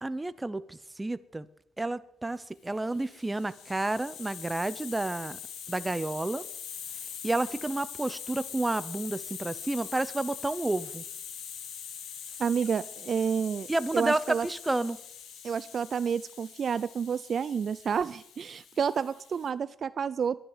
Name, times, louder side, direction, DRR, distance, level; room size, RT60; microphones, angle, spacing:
voice 1, 0.0-1.5 1.8-5.4 5.7-6.4 7.2-11.0 13.7-15.0, right 2 dB, 15° right, 15 dB, 0.8 m, -30 dB
Hiss, 2.8-19.5, left 8 dB, 80° left, 2.1 m, -43 dB
voice 2, 12.4-13.7 13.9-14.5 15.4-20.4, right 7 dB, 50° right, 16 dB, 0.5 m, -29 dB
11.0 x 11.0 x 9.6 m, 0.73 s
cardioid pair, 90°, 0 cm